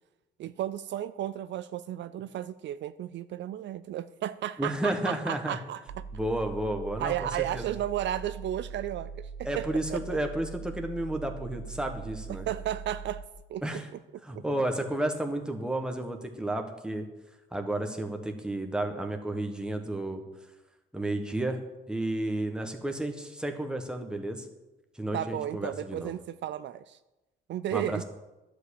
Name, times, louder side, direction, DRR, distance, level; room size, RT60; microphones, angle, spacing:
voice 1, 0.4-5.8 7.0-9.3 9.6-10.2 12.5-13.2 13.5-13.8 25.1-27.0 27.5-28.0, right 12 dB, 65° right, 14 dB, 0.4 m, -33 dB
voice 2, 4.6-5.6 6.1-7.1 7.5-7.7 9.4-12.5 13.6-13.9 14.2-17.1 17.5-20.2 20.9-21.6 21.9-24.5 25.0-26.1 27.7-28.0, right 1 dB, 5° right, 4 dB, 1.5 m, -32 dB
sound 1, 5.9-13.3, right 5 dB, 85° right, 0.9 m, -41 dB
11.0 x 5.0 x 8.4 m, 1.0 s
cardioid pair, 90°, 20 cm